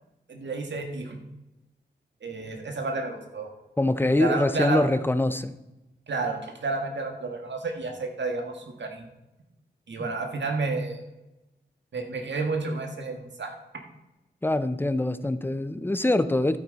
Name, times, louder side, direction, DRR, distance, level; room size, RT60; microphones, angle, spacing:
voice 1, 0.3-1.2 2.2-3.5 4.0-4.8 6.1-9.1 9.9-11.0 11.9-13.5, right 3 dB, 80° right, 3 dB, 1.8 m, -31 dB
voice 2, 3.8-5.5 10.0-10.1 14.4-16.6, left 1 dB, 10° left, 11 dB, 0.6 m, -24 dB
12.5 x 8.9 x 4.1 m, 0.97 s
wide cardioid pair, 90°, 18 cm